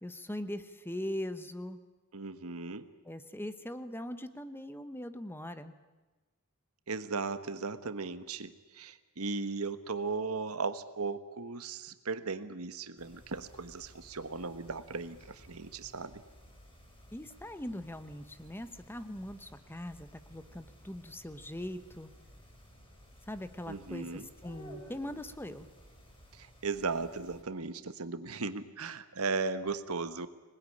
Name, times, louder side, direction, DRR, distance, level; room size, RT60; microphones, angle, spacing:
voice 1, 0.0-1.8 3.0-5.7 17.1-22.1 23.3-25.7, left 1 dB, 10° left, 11 dB, 1.1 m, -41 dB
voice 2, 2.1-2.8 6.9-16.2 23.7-24.3 26.4-30.3, right 4 dB, 85° right, 11 dB, 1.4 m, -37 dB
sound 1, 13.0-27.4, equal, 25° left, 6.6 m, -55 dB
25.5 x 20.0 x 10.0 m, 1.2 s
head